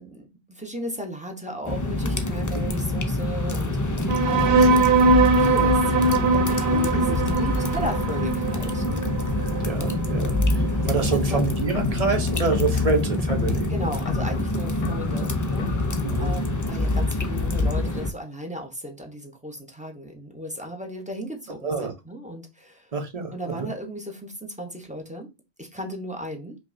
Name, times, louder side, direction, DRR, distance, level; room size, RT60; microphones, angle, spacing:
voice 1, 0.0-4.8 5.3-9.1 10.7-11.4 13.7-22.9 23.3-25.3 25.6-26.6, equal, 10° right, 3 dB, 0.8 m, -36 dB
sound 1, 1.6-18.1, left 2 dB, 25° left, 0.4 m, -26 dB
sound 2, 4.1-11.0, right 3 dB, 90° right, 1.0 m, -22 dB
voice 2, 4.5-4.8 6.9-7.1 9.6-13.7 16.0-16.3 21.6-21.9 22.9-23.7, right 4 dB, 40° right, 4 dB, 0.9 m, -27 dB
sound 3, 11.3-16.3, left 6 dB, 55° left, 0.8 m, -34 dB
5.2 x 2.3 x 2.6 m, 0.26 s
omnidirectional pair, 1.0 m